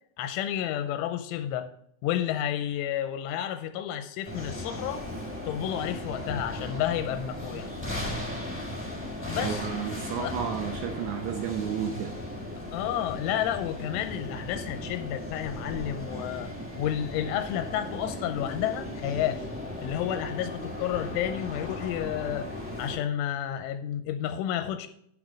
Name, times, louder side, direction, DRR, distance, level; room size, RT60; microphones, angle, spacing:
voice 1, 0.2-1.7 2.0-5.1 5.5-7.7 9.3-9.7 10.2-10.3 12.7-16.5 16.8-19.4 19.8-22.5 22.8-24.9, left 10 dB, 90° left, 8 dB, 3.1 m, -31 dB
sound 1, 4.3-23.0, left 1 dB, 5° left, 2.7 m, -37 dB
voice 2, 9.4-12.2, right 8 dB, 75° right, 2 dB, 2.9 m, -32 dB
10.5 x 6.1 x 5.1 m, 0.70 s
omnidirectional pair, 5.5 m